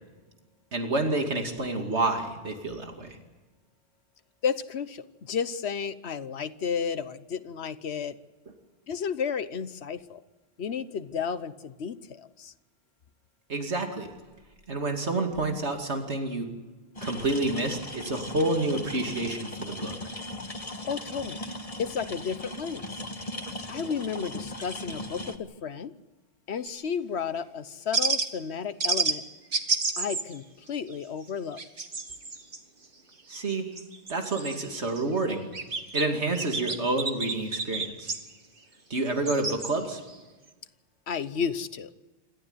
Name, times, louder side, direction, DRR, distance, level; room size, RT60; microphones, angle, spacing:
voice 1, 0.7-3.2 13.5-14.1 14.7-16.5 17.0-20.0 33.3-33.7 34.1-35.5 35.9-38.1 38.9-40.0, right 2 dB, 85° right, 4 dB, 2.8 m, -29 dB
voice 2, 4.4-8.2 8.9-10.2 10.6-12.5 20.9-21.4 21.8-22.9 23.7-25.9 26.5-29.2 30.0-31.6 41.1-41.9, left 6 dB, 75° left, 14 dB, 1.2 m, -32 dB
sound 1, 16.9-25.4, left 1 dB, 35° left, 1.6 m, -38 dB
sound 2, 26.6-26.8 27.9-28.3 28.8-29.2 29.5-30.3 30.7-30.9 31.3-32.6 33.3-35.0 35.3-36.0 36.3-38.2 39.1-39.7 40.1-40.2, right 3 dB, 55° right, 1.9 m, -30 dB
27.0 x 14.0 x 9.6 m, 1.2 s
omnidirectional pair, 1.1 m